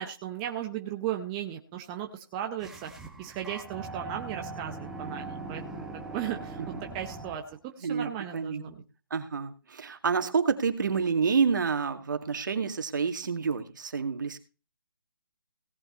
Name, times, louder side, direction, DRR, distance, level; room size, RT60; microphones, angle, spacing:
voice 1, 0.0-2.9 3.2-8.8, right 10 dB, 20° right, 3 dB, 0.9 m, -36 dB
sound 1, 2.6-7.6, right 3 dB, 5° right, 1.3 m, -41 dB
voice 2, 7.8-8.6 9.1-14.4, right 5 dB, 60° right, 7 dB, 2.0 m, -28 dB
17.5 x 8.0 x 4.2 m, 0.32 s
hypercardioid pair, 155°, 12 cm